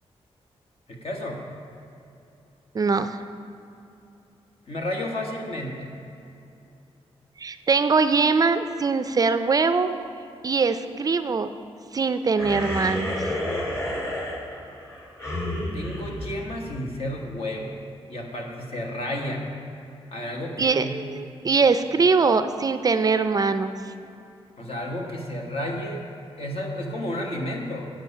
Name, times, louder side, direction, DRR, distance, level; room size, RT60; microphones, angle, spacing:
voice 1, 0.9-1.4 4.7-5.9 15.7-17.8 18.1-19.4 20.1-20.9 24.6-26.0 26.4-27.9, left 1 dB, 65° left, 0 dB, 1.5 m, -31 dB
voice 2, 2.7-3.2 7.4-9.9 10.4-11.5 11.9-13.1 20.6-23.7, right 4 dB, 35° right, 10 dB, 0.4 m, -22 dB
sound 1, 12.4-17.1, left 1 dB, 30° left, 1.8 m, -31 dB
9.3 x 7.6 x 5.5 m, 2.7 s
wide cardioid pair, 110°, 11 cm